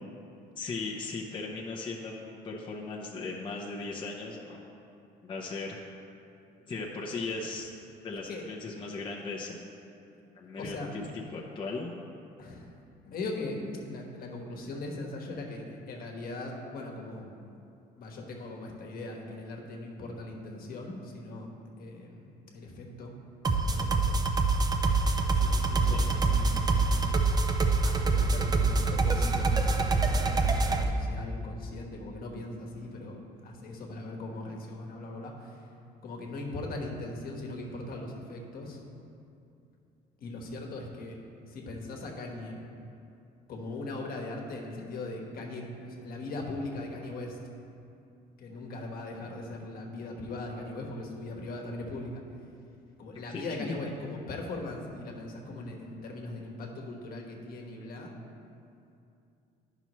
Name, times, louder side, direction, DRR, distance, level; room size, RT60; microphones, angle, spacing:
voice 1, 0.6-4.6 5.2-5.8 6.7-7.7 8.0-9.6 10.3-11.9 25.9-26.0 53.3-53.8, left 3 dB, 30° left, -3 dB, 0.8 m, -37 dB
voice 2, 10.5-10.9 12.4-12.7 13.0-17.2 18.0-21.5 21.8-23.1 23.5-24.2 25.2-26.9 27.8-35.6 36.0-38.8 40.2-41.2 41.4-42.6 43.5-47.4 48.4-52.2 53.0-58.1, left 2 dB, 60° left, 0 dB, 1.3 m, -39 dB
sound 1, 23.4-30.8, right 3 dB, 25° right, 0.6 m, -25 dB
11.0 x 5.8 x 3.1 m, 2.6 s
cardioid pair, 110°, 17 cm